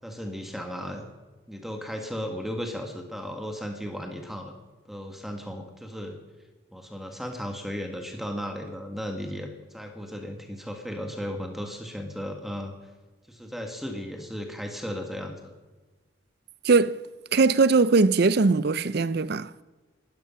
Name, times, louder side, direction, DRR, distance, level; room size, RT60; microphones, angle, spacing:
voice 1, 0.0-1.0 1.5-4.6 4.9-6.2 6.7-12.7 13.3-15.5, equal, ahead, 1.7 m, -35 dB
voice 2, 16.6-17.0 17.3-19.5, right 4 dB, 55° right, 0.5 m, -20 dB
17.5 x 13.0 x 5.8 m
head